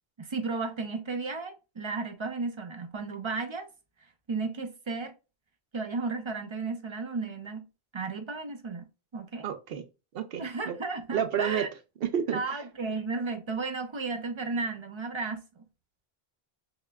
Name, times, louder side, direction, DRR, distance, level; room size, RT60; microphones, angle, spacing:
voice 1, 0.2-3.7 4.3-5.1 5.7-7.6 7.9-9.5 10.4-11.7 12.3-15.6, right 4 dB, 40° right, 0.5 m, -34 dB
voice 2, 9.4-9.8 10.1-10.7 11.1-11.7 12.0-12.4, right 8 dB, 70° right, 0.8 m, -30 dB
5.6 x 2.1 x 2.2 m
omnidirectional pair, 1.0 m